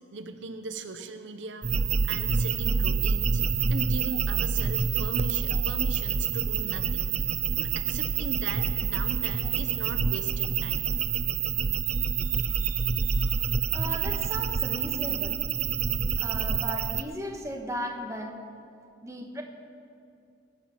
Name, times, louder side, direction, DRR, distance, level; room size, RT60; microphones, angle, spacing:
voice 1, 0.1-3.4 3.7-10.9, right 3 dB, 75° right, 8 dB, 0.8 m, -39 dB
sound 1, 1.6-17.0, right 6 dB, 35° right, 0.4 m, -27 dB
voice 2, 11.8-13.5 13.7-15.4 16.2-18.4 19.0-19.4, equal, 15° right, 2 dB, 1.3 m, -37 dB
21.0 x 8.8 x 5.8 m, 2.4 s
head